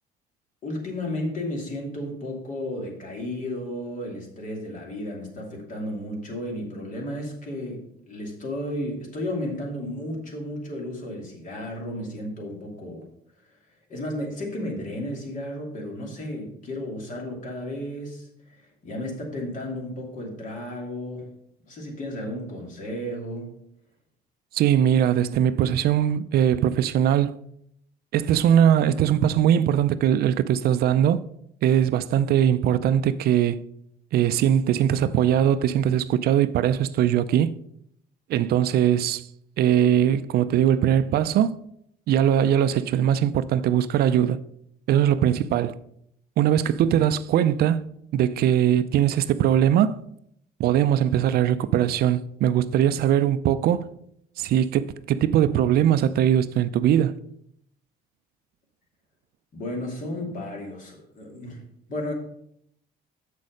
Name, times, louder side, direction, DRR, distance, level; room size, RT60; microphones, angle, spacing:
voice 1, 0.6-13.0 13.9-21.3 21.7-23.5 59.5-61.6 61.9-62.1, left 1 dB, 50° left, 2.7 m, -33 dB
voice 2, 24.5-27.4 28.1-31.2 31.6-33.6 34.1-37.5 38.3-39.2 39.6-41.6 42.1-44.4 44.9-45.8 46.4-47.8 48.1-50.0 50.6-53.9 54.4-57.2, right 10 dB, 65° right, 0.5 m, -21 dB
7.4 x 6.4 x 5.1 m
cardioid pair, 110°, 17 cm